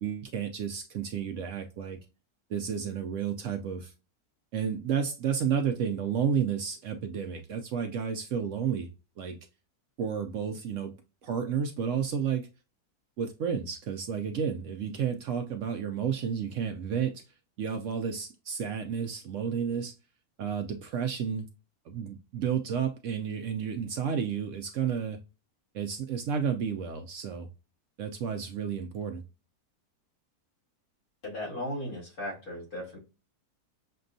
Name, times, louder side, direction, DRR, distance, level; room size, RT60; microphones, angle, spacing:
voice 1, 0.0-2.0 2.5-3.9 4.5-8.9 9.2-9.4 10.0-11.0 11.2-12.5 13.2-17.2 17.6-19.9 20.4-21.5 21.9-25.2 25.7-27.5 28.0-29.2, right 7 dB, 65° right, 0.8 m, -31 dB
voice 2, 31.2-33.0, left 1 dB, 70° left, 2.5 m, -36 dB
6.6 x 2.2 x 2.5 m
omnidirectional pair, 1.6 m